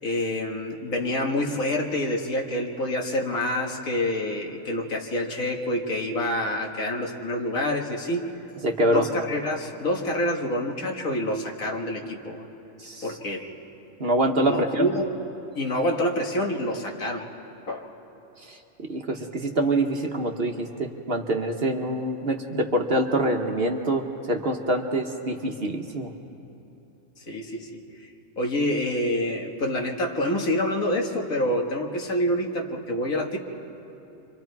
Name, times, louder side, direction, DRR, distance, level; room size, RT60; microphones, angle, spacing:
voice 1, 0.0-8.3 8.8-12.5 13.0-13.5 14.5-15.1 15.6-17.3 17.7-17.9 27.2-28.1 28.4-33.4, left 1 dB, 75° left, 1 dB, 2.1 m, -27 dB
voice 2, 8.6-9.0 12.8-13.0 14.0-14.9 18.9-26.1, right 1 dB, 45° right, 2 dB, 1.2 m, -25 dB
29.5 x 25.0 x 4.7 m, 3.0 s
omnidirectional pair, 1.4 m